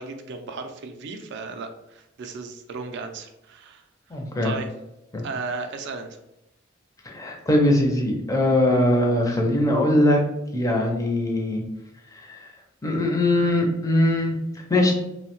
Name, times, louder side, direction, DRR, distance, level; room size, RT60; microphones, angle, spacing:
voice 1, 0.0-3.8 4.4-4.7 5.2-6.2, right 4 dB, 60° right, 6 dB, 0.4 m, -35 dB
voice 2, 4.1-4.5 5.1-5.2 7.0-10.2 10.5-11.6 12.1-12.5 12.8-14.4 14.7-14.9, left 1 dB, 15° left, 1 dB, 0.5 m, -21 dB
2.6 x 2.1 x 2.9 m, 0.88 s
head